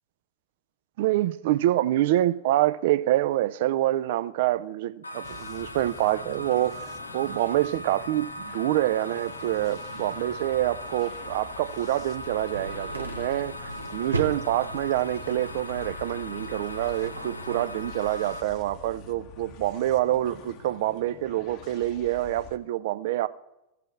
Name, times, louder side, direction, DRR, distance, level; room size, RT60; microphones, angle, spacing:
voice 1, 1.0-23.3, right 14 dB, 55° right, 0.4 m, -26 dB
sound 1, 5.0-18.4, left 1 dB, 80° left, 0.6 m, -39 dB
sound 2, 5.2-22.6, left 6 dB, 40° left, 0.8 m, -47 dB
sound 3, 12.3-18.3, right 2 dB, 80° right, 0.8 m, -37 dB
16.0 x 6.7 x 3.2 m
figure-of-eight pair, 90°, 0 cm